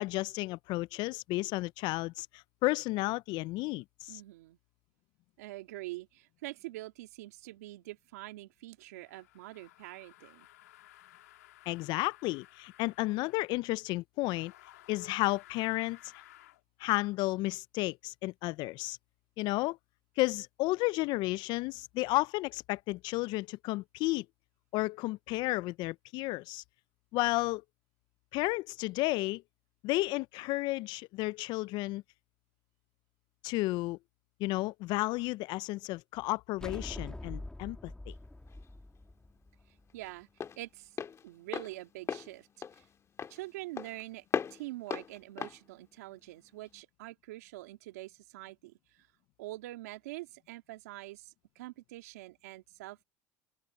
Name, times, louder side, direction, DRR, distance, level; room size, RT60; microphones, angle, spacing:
voice 1, 0.0-4.2 11.7-14.5 14.9-16.2 16.8-19.0 19.4-19.8 20.2-24.2 24.7-26.6 27.1-27.6 28.3-29.4 29.8-32.0 33.4-34.0 34.4-38.1, left 20 dB, 65° left, 0.5 m, -32 dB
voice 2, 4.1-4.6 5.4-10.5 39.9-40.3 40.6-40.9 41.2-42.5 42.7-42.9 43.3-44.2 44.5-49.1 49.4-53.0, right 18 dB, 85° right, 2.5 m, -45 dB
sound 1, 9.0-13.6 14.2-16.6, left 15 dB, 90° left, 3.1 m, -58 dB
sound 2, 36.6-40.0, left 1 dB, 10° left, 2.2 m, -44 dB
Walk footsteps, 38.1-46.8, left 7 dB, 35° left, 1.8 m, -40 dB
open air
hypercardioid pair, 80°, 8 cm